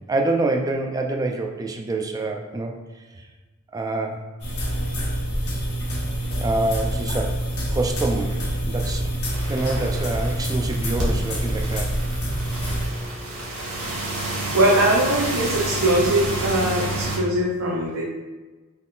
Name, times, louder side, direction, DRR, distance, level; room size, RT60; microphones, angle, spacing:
voice 1, 0.1-2.8 3.1-3.3 3.7-4.2 6.4-9.1 9.5-12.0, right 2 dB, 15° right, 2 dB, 0.3 m, -26 dB
sound 1, 4.4-12.9, right 1 dB, 85° left, 1.1 m, -26 dB
sound 2, 9.3-17.2, right 1 dB, 85° right, 1.2 m, -29 dB
voice 2, 14.5-18.0, right 1 dB, 65° right, -3 dB, 0.6 m, -21 dB
4.2 x 3.6 x 2.4 m, 1.2 s
head